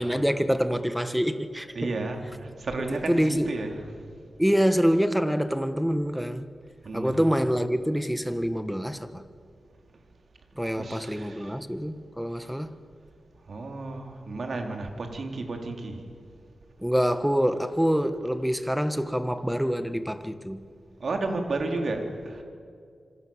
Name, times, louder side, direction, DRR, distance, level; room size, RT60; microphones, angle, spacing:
voice 1, 0.0-1.9 2.9-3.5 4.4-6.5 6.9-9.2 10.5-12.8 16.8-20.6, equal, 5° right, 1.6 m, -26 dB
voice 2, 1.7-3.8 6.8-7.2 10.8-11.6 13.5-16.0 21.0-22.4, right 2 dB, 60° right, 4.0 m, -32 dB
26.5 x 26.5 x 7.4 m
wide cardioid pair, 80°, 0 cm